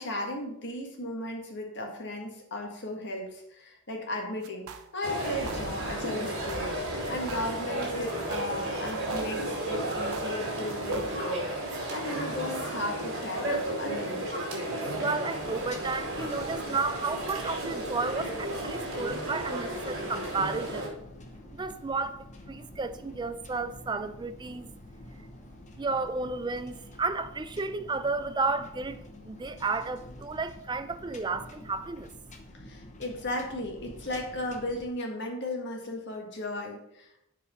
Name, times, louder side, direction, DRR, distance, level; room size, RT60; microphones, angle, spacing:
voice 1, 0.0-14.3 32.5-37.3, left 1 dB, 55° left, 1.7 m, -36 dB
sound 1, 4.4-4.9 5.2-5.9 6.2-6.8 7.0-7.8 8.1-9.6 9.9-11.4, right 5 dB, 85° right, 0.6 m, -45 dB
sound 2, 5.0-20.9, right 1 dB, 60° right, 2.4 m, -33 dB
voice 2, 15.0-20.9 21.5-24.7 25.8-29.0 29.2-32.1, right 3 dB, 20° right, 0.4 m, -32 dB
sound 3, 15.3-34.9, left 1 dB, 35° left, 0.9 m, -48 dB
7.4 x 4.7 x 5.2 m
head